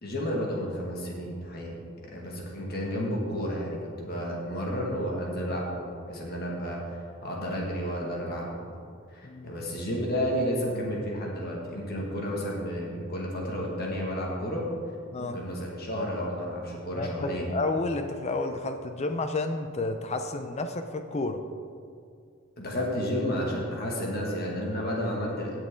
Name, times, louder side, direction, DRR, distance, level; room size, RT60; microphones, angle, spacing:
voice 1, 0.0-1.7 2.1-8.6 9.1-14.6 15.2-17.5 22.6-25.6, equal, 50° left, -2 dB, 1.9 m, -31 dB
voice 2, 17.0-21.4, left 2 dB, 30° left, 7 dB, 0.5 m, -31 dB
17.0 x 6.5 x 3.8 m, 2.3 s
head